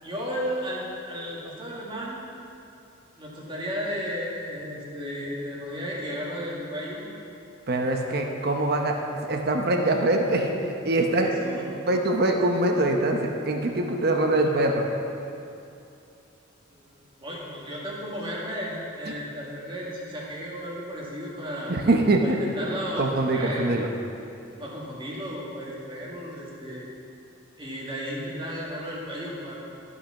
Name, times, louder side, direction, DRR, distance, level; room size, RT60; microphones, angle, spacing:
voice 1, 0.0-2.2 3.2-7.1 11.1-11.7 16.7-21.7 22.2-23.1 23.3-23.7 24.6-26.9 27.6-29.5, equal, 25° right, -5 dB, 1.9 m, -34 dB
voice 2, 7.7-11.3 11.9-14.9 21.7-22.4 23.0-23.9, right 2 dB, 50° right, 2 dB, 0.8 m, -23 dB
13.0 x 5.6 x 5.8 m, 2.7 s
head